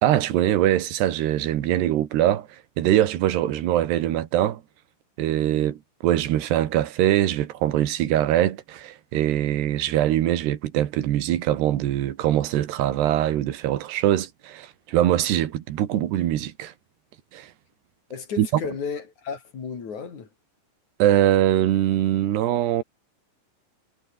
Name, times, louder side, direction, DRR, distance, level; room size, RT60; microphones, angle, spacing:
voice 1, 0.0-2.5 2.8-4.6 5.2-16.7 17.3-17.5 18.4-18.5 21.0-22.8, right 12 dB, 70° right, 3.6 m, -22 dB
voice 2, 18.1-20.3, left 6 dB, 40° left, 4.8 m, -33 dB
omnidirectional pair, 5.3 m